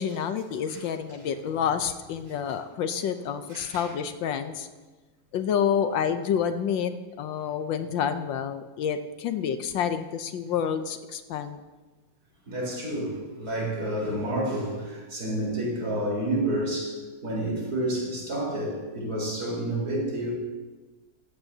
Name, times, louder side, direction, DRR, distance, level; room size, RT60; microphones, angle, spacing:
voice 1, 0.0-4.7 5.3-11.6, left 8 dB, 75° left, 9 dB, 1.4 m, -28 dB
voice 2, 3.5-3.9 12.5-20.3, right 1 dB, 50° right, -4 dB, 4.5 m, -29 dB
16.5 x 13.5 x 2.8 m, 1.2 s
omnidirectional pair, 2.1 m